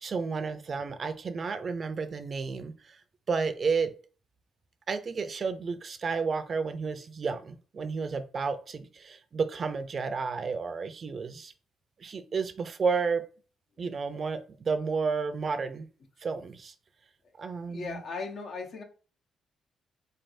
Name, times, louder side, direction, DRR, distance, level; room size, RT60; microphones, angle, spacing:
voice 1, 0.0-2.7 3.3-3.9 4.9-11.5 12.0-13.2 13.8-15.9 16.2-16.7 17.4-18.0, right 5 dB, 45° right, 0.5 m, -31 dB
voice 2, 17.7-18.8, left 4 dB, 60° left, 0.8 m, -37 dB
4.0 x 3.2 x 2.6 m
cardioid pair, 90°, 0 cm